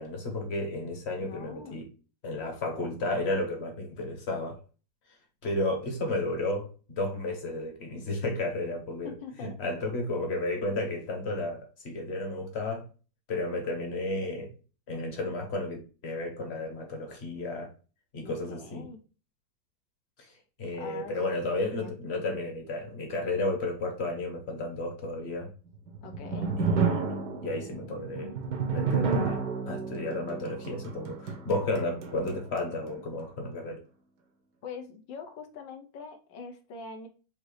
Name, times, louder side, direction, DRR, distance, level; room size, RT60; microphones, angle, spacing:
voice 1, 0.0-1.8 2.2-4.6 5.4-9.1 9.4-12.9 13.3-14.5 14.9-17.7 18.1-18.8 20.2-20.3 20.6-25.5 26.6-27.1 27.4-28.3 28.7-29.4 29.7-33.8, left 2 dB, 40° left, 1.2 m, -32 dB
voice 2, 1.2-1.8 9.0-9.5 18.2-19.0 20.8-21.1 21.6-22.0 26.0-26.5 34.6-37.1, left 5 dB, 75° left, 1.5 m, -43 dB
sound 1, 25.7-33.0, right 5 dB, 70° right, 1.5 m, -31 dB
5.3 x 2.8 x 3.1 m
omnidirectional pair, 2.0 m